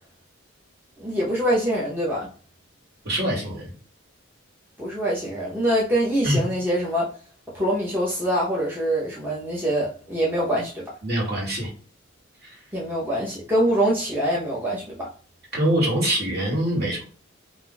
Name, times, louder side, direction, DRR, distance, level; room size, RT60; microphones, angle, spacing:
voice 1, 1.0-2.3 4.8-7.1 7.5-10.8 12.7-15.1, equal, 10° right, 0.6 m, -24 dB
voice 2, 3.0-3.7 6.2-6.4 11.0-11.7 15.5-17.0, right 1 dB, 50° right, 1.4 m, -24 dB
2.5 x 2.3 x 3.7 m
head